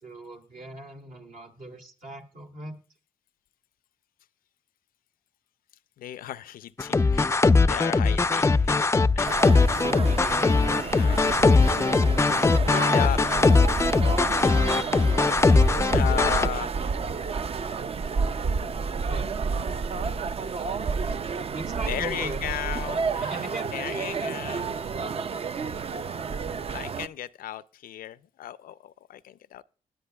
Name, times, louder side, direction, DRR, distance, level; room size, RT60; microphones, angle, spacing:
voice 1, 0.0-2.8 9.8-10.8 11.2-11.6 19.1-19.3 21.5-22.4 23.2-24.4, right 2 dB, 70° right, 2.0 m, -39 dB
voice 2, 6.0-7.3 7.6-8.8 9.1-9.4 10.8-11.4 12.6-13.2 15.8-16.7 21.9-23.5 23.7-24.7 26.7-29.6, left 12 dB, 80° left, 0.5 m, -35 dB
sound 1, 6.8-16.5, left 3 dB, 20° left, 0.4 m, -20 dB
sound 2, 9.2-27.1, right 5 dB, 40° right, 0.5 m, -30 dB
19.5 x 8.0 x 2.3 m
cardioid pair, 65°, 15 cm